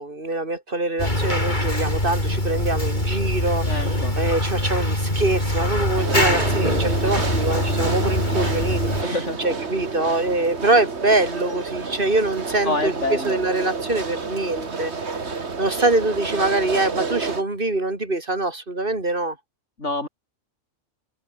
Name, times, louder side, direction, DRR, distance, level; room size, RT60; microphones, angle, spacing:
voice 1, 0.0-9.2 9.4-19.4, right 2 dB, 45° right, 3.5 m, -24 dB
sound 1, 1.0-9.0, left 1 dB, 35° left, 8.1 m, -23 dB
voice 2, 3.6-4.2 7.0-7.3 9.0-9.7 12.6-13.4 19.8-20.1, left 2 dB, 70° left, 5.0 m, -27 dB
sound 2, 6.0-17.4, right 4 dB, 60° right, 2.3 m, -29 dB
omnidirectional pair, 1.3 m